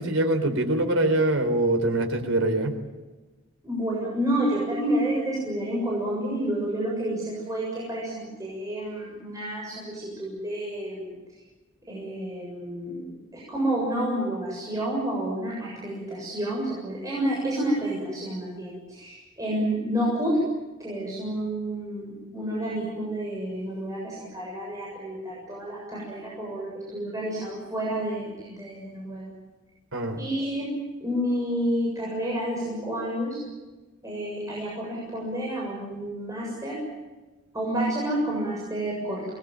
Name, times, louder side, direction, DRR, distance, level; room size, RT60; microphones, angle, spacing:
voice 1, 0.0-2.8 29.9-30.2, right 1 dB, 85° right, 6 dB, 4.1 m, -24 dB
voice 2, 3.6-11.2 11.9-20.4 20.8-29.3 30.2-30.7 31.0-33.4 34.0-36.8 37.5-39.2, right 1 dB, 15° right, -5 dB, 7.5 m, -29 dB
26.0 x 21.5 x 8.9 m, 1.2 s
head